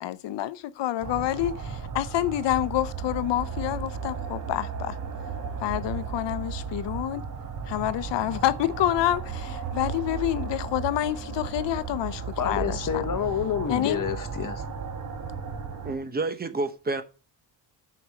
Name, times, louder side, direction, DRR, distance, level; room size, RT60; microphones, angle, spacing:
voice 1, 0.0-5.0 5.6-7.2 7.7-13.0 13.7-14.0, left 13 dB, 75° left, 0.7 m, -28 dB
sound 1, 1.0-16.0, right 6 dB, 45° right, 1.4 m, -35 dB
voice 2, 12.4-14.7, left 9 dB, 45° left, 1.1 m, -28 dB
voice 3, 15.8-17.0, right 3 dB, 20° right, 0.9 m, -29 dB
6.7 x 5.3 x 6.3 m
cardioid pair, 155°, 44 cm